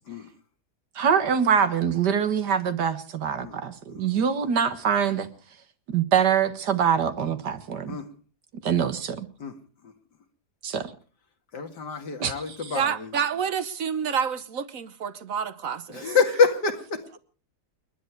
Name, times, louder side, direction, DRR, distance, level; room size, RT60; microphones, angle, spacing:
voice 1, 1.0-5.3 5.9-8.0 8.6-9.3 10.6-10.9 12.2-12.8, right 7 dB, 80° right, 2.1 m, -24 dB
voice 2, 11.5-13.1 15.9-17.2, left 5 dB, 85° left, 2.6 m, -26 dB
voice 3, 12.7-16.1, right 7 dB, 55° right, 1.3 m, -28 dB
29.0 x 11.0 x 4.6 m
omnidirectional pair, 1.8 m